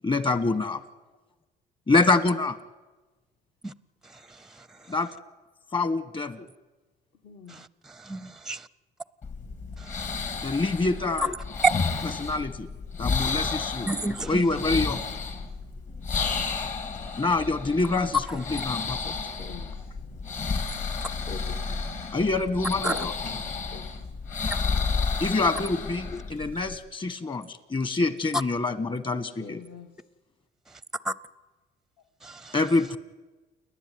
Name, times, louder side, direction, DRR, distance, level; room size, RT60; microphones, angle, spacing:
voice 1, 0.0-0.8 1.9-2.6 4.9-5.1 5.7-6.5 10.4-11.3 12.0-12.7 13.0-13.9 14.3-15.0 17.2-19.1 22.1-23.1 25.2-29.6 32.5-33.0, left 3 dB, 30° left, 1.6 m, -26 dB
voice 2, 7.2-7.6 15.4-15.5 17.0-17.1 19.1-21.9 22.8-24.0 29.4-29.9, left 6 dB, 65° left, 2.1 m, -45 dB
voice 3, 8.1-8.6 11.2-11.3 11.6-11.8 13.9-14.4 22.9-23.0 26.1-26.2 31.0-31.1 32.2-32.5, right 3 dB, 5° right, 0.6 m, -27 dB
sound 1, 9.2-26.8, left 4 dB, 45° left, 2.9 m, -32 dB
29.5 x 11.0 x 9.4 m
cardioid pair, 110°, 17 cm